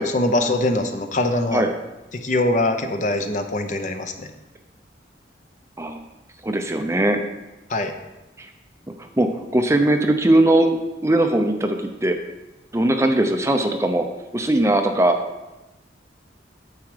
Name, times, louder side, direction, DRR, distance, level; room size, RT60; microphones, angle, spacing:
voice 1, 0.1-1.6 2.1-4.3 7.7-7.9, left 2 dB, 40° left, 6 dB, 0.8 m, -22 dB
voice 2, 6.4-7.2 8.4-8.5 9.2-12.2 12.7-14.0 14.3-15.2, right 1 dB, 15° right, 5 dB, 0.6 m, -19 dB
9.4 x 7.4 x 4.9 m, 1.0 s
head